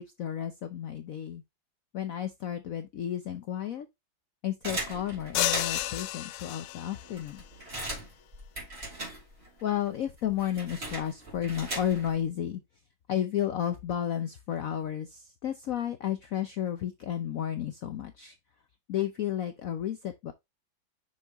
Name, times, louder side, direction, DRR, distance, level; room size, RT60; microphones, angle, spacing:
voice 1, 0.0-1.4 1.9-3.9 4.4-7.4 9.6-12.6 13.1-18.3 18.9-20.3, left 10 dB, 75° left, 0.7 m, -32 dB
sound 1, 4.6-6.0 6.6-6.7 6.9-9.6 9.9-12.2, right 1 dB, 30° right, 3.3 m, -39 dB
sound 2, 5.3-7.1, left 14 dB, 90° left, 1.5 m, -31 dB
6.2 x 5.3 x 2.9 m
omnidirectional pair, 2.3 m